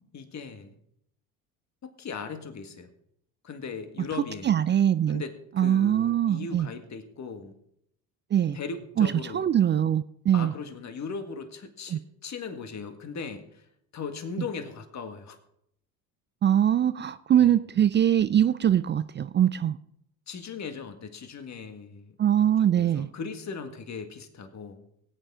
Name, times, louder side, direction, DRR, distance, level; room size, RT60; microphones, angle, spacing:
voice 1, 0.1-0.8 2.0-2.9 3.4-4.5 5.1-7.5 8.5-9.4 10.3-13.7 13.9-15.4 17.4-17.5 20.3-22.2 22.6-24.9, left 5 dB, 40° left, 7 dB, 1.9 m, -38 dB
voice 2, 4.4-5.2 5.6-6.7 8.3-8.6 9.0-10.5 11.9-12.0 16.4-19.8 22.2-23.1, right 10 dB, 25° right, 15 dB, 0.4 m, -22 dB
18.5 x 8.8 x 3.7 m, 0.74 s
hypercardioid pair, 70°, 43 cm